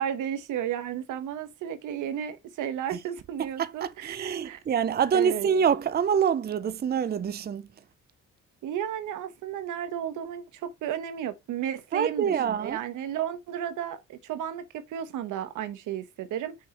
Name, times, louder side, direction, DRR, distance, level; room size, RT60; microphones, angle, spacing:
voice 1, 0.0-4.6 5.1-5.5 8.6-16.6, right 9 dB, 85° right, 1.2 m, -33 dB
voice 2, 3.4-7.7 11.9-12.8, right 7 dB, 35° right, 0.5 m, -26 dB
6.3 x 5.5 x 3.0 m
cardioid pair, 90°, 30 cm